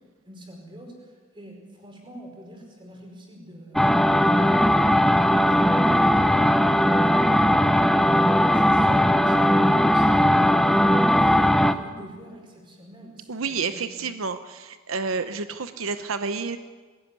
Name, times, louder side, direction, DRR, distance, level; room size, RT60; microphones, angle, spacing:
voice 1, 0.2-3.9 5.1-14.0 15.2-15.3, equal, 25° right, 1 dB, 4.9 m, -44 dB
sound 1, 3.8-11.7, equal, ahead, 0.6 m, -18 dB
voice 2, 13.3-16.6, right 4 dB, 85° right, 10 dB, 0.9 m, -29 dB
21.5 x 16.0 x 9.6 m, 1.5 s
head